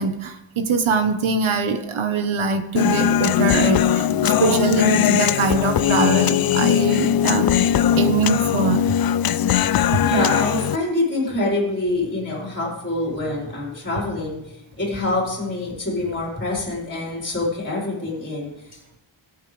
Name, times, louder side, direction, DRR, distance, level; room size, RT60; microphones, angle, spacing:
voice 1, 0.0-8.8, right 4 dB, 75° right, 7 dB, 1.4 m, -23 dB
Human voice, 2.8-10.8, left 10 dB, 50° left, 0.5 m, -19 dB
voice 2, 9.8-19.0, left 2 dB, 25° left, -5 dB, 4.7 m, -26 dB
21.0 x 8.9 x 3.5 m, 0.92 s
wide cardioid pair, 120°, 48 cm